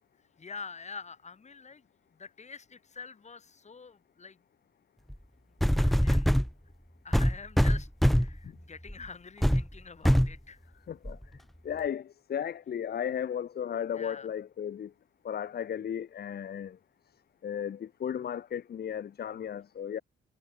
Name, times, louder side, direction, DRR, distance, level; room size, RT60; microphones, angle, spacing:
voice 1, 0.4-4.4 5.7-6.5 7.0-10.6 13.9-14.3, left 5 dB, 35° left, 7.2 m, -46 dB
sound 1, 5.1-5.2 5.6-6.5 7.1-8.4 8.9-9.0 9.4-9.6 10.0-10.4 11.1-11.2, equal, ahead, 1.5 m, -23 dB
voice 2, 11.7-14.9 15.3-16.8 17.4-20.0, left 8 dB, 55° left, 1.7 m, -35 dB
cardioid pair, 90°, 20 cm